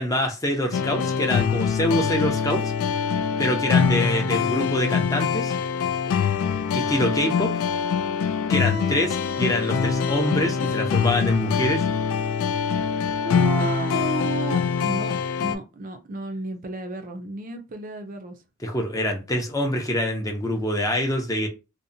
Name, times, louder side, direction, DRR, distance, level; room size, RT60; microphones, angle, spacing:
voice 1, 0.0-2.7 3.4-5.5 6.7-7.5 8.5-11.9 18.6-21.5, left 1 dB, 15° left, 0.5 m, -25 dB
sound 1, 0.7-15.6, left 6 dB, 80° left, 0.3 m, -24 dB
voice 2, 13.2-18.4, right 2 dB, 40° right, 0.4 m, -32 dB
2.6 x 2.1 x 2.6 m
head